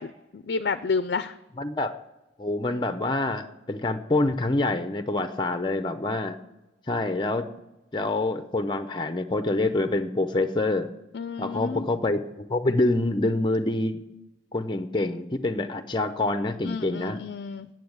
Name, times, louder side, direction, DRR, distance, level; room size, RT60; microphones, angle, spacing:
voice 1, 0.0-1.3 11.1-11.9 16.6-17.7, left 4 dB, 65° left, 12 dB, 0.5 m, -30 dB
voice 2, 1.6-1.9 2.4-6.4 6.9-7.4 7.9-10.9 11.4-14.0 14.5-17.2, left 2 dB, 25° left, 9 dB, 0.6 m, -26 dB
9.3 x 7.8 x 7.9 m, 0.98 s
head